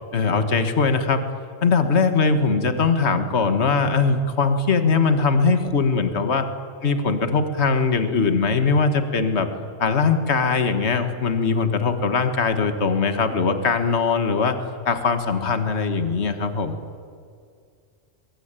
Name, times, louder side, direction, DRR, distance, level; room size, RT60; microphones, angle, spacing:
voice 1, 0.1-1.2 1.6-6.5 6.8-9.5 9.8-14.6 14.9-16.8, left 4 dB, 55° left, 8 dB, 1.8 m, -21 dB
23.0 x 22.5 x 9.0 m, 2.3 s
omnidirectional pair, 1.4 m